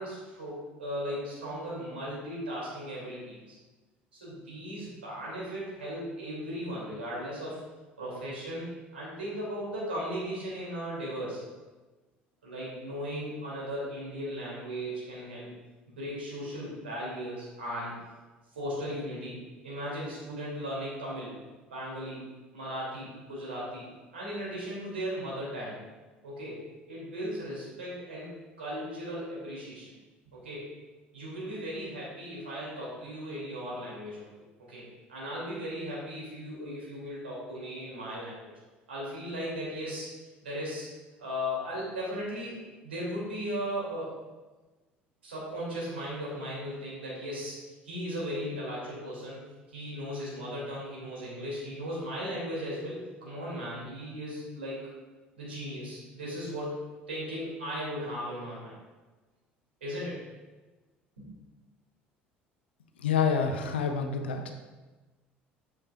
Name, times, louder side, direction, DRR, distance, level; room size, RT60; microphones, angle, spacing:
voice 1, 0.0-3.6 4.1-7.6 8.0-8.7 8.9-11.4 12.4-15.5 15.9-17.9 18.5-19.4 19.6-21.3 21.7-22.2 22.5-23.8 24.1-25.8 26.2-26.6 26.9-28.3 28.6-29.9 30.3-30.7 31.1-34.3 34.7-34.8 35.1-38.5 38.9-40.1 40.4-40.9 41.2-42.5 42.8-44.1 45.2-47.6 47.8-54.8 55.4-56.8 57.1-58.7 59.8-60.2 61.2-61.3, equal, 80° right, -6 dB, 2.3 m, -37 dB
voice 2, 63.0-64.5, left 6 dB, 75° left, 5 dB, 0.6 m, -27 dB
8.6 x 6.4 x 2.3 m, 1.2 s
figure-of-eight pair, 60°, 6 cm